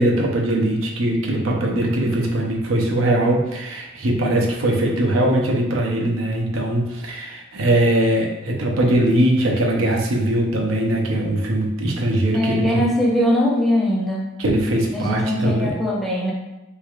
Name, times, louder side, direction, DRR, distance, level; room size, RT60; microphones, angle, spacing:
voice 1, 0.0-12.8 14.4-15.8, right 1 dB, 70° right, -1 dB, 0.6 m, -20 dB
voice 2, 12.3-14.3 14.9-16.3, left 1 dB, ahead, -5 dB, 0.5 m, -21 dB
3.5 x 3.2 x 2.4 m, 0.99 s
head